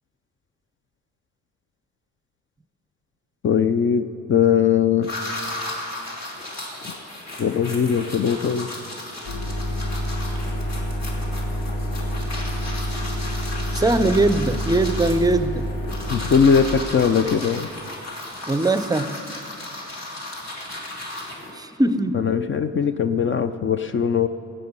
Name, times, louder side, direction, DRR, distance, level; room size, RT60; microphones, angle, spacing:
voice 1, 3.4-5.1 7.4-8.7 16.1-17.7 22.1-24.3, left 7 dB, 40° left, 10 dB, 0.5 m, -20 dB
sound 1, 5.0-21.5, left 1 dB, 60° left, 2.6 m, -35 dB
sound 2, 9.2-16.8, equal, 85° left, 1.8 m, -28 dB
voice 2, 13.7-15.7 18.5-19.2 21.6-22.2, right 2 dB, 15° right, 12 dB, 0.5 m, -21 dB
16.5 x 7.5 x 5.4 m, 2.7 s
cardioid pair, 90°, 30 cm